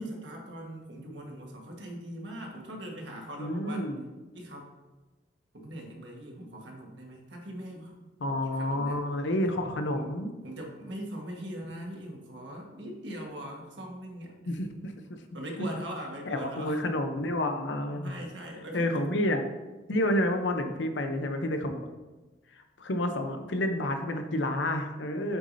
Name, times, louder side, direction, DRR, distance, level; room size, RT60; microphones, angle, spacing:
voice 1, 0.0-3.8 4.3-4.7 5.5-7.9 8.3-9.0 9.9-10.1 10.4-14.4 15.3-16.8 17.9-19.1, equal, 75° right, 0 dB, 1.5 m, -41 dB
voice 2, 3.4-4.0 8.2-10.3 14.5-15.2 16.3-18.2 18.7-19.4 19.9-21.8 22.8-25.4, left 1 dB, 80° left, 6 dB, 0.7 m, -29 dB
8.2 x 6.2 x 2.7 m, 1.2 s
head